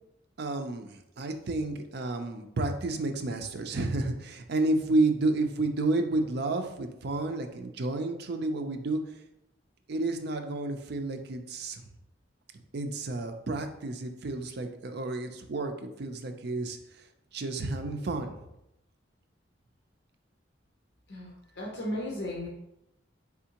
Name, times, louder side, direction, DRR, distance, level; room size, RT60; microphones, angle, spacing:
voice 1, 0.4-9.0 9.9-11.8 12.7-17.1 17.3-18.3, right 2 dB, 60° right, 6 dB, 0.5 m, -31 dB
voice 2, 21.1-22.5, left 1 dB, 65° left, -3 dB, 0.8 m, -35 dB
4.2 x 3.6 x 2.9 m, 0.85 s
head